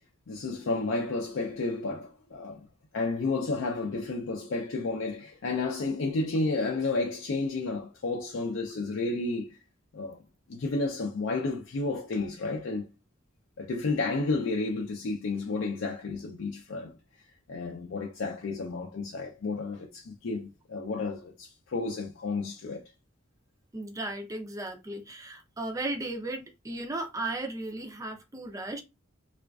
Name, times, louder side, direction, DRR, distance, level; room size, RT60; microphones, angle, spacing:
voice 1, 0.3-2.7 2.9-9.6 9.9-10.2 10.5-12.9 13.6-16.9 17.5-22.8, left 3 dB, 70° left, 0.4 m, -31 dB
voice 2, 23.7-28.8, right 2 dB, 15° right, 0.4 m, -35 dB
2.4 x 2.3 x 2.2 m
head